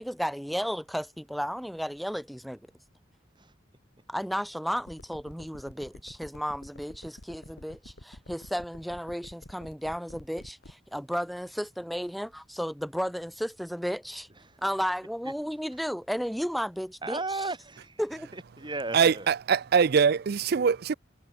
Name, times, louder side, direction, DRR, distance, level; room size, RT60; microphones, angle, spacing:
voice 1, 0.0-2.6 4.1-14.3 14.6-17.2 18.0-18.3, equal, ahead, 1.8 m, -33 dB
sound 1, 4.8-10.7, left 1 dB, 65° left, 2.7 m, -47 dB
voice 2, 14.3-14.6 15.2-15.3 15.7-15.8 17.0-18.0 18.3-19.3, right 3 dB, 25° right, 6.4 m, -36 dB
voice 3, 18.9-20.9, right 6 dB, 55° right, 0.4 m, -23 dB
head